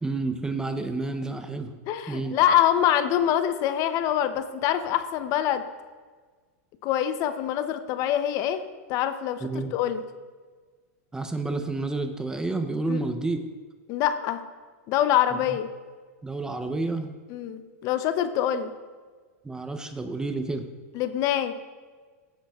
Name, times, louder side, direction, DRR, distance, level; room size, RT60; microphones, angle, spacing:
voice 1, 0.0-1.8 2.1-2.3 9.4-9.7 11.1-13.4 15.3-15.6 16.2-17.2 19.4-20.7, right 3 dB, 10° right, 7 dB, 0.6 m, -30 dB
voice 2, 1.9-5.6 6.8-8.6 8.9-10.0 12.9-13.0 13.9-14.4 14.9-15.7 17.3-18.7 20.9-21.5, left 10 dB, 40° left, 10 dB, 0.6 m, -25 dB
15.0 x 8.5 x 2.4 m, 1.5 s
supercardioid pair, 135°, 8 cm